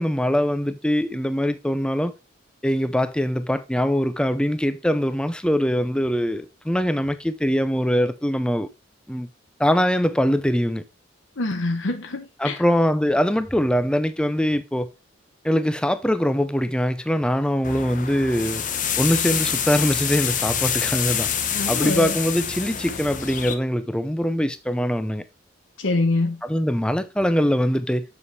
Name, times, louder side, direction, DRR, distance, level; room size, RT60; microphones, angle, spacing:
voice 1, 0.0-2.1 2.6-8.7 9.1-9.3 9.6-10.8 12.4-14.9 15.4-18.6 19.0-21.3 21.7-25.2 26.5-28.0, equal, 5° left, 0.5 m, -22 dB
voice 2, 11.4-12.6 21.5-22.2 25.8-26.4, left 2 dB, 70° left, 0.9 m, -25 dB
sound 1, 17.6-23.6, left 8 dB, 40° left, 0.8 m, -26 dB
7.0 x 7.0 x 3.3 m
head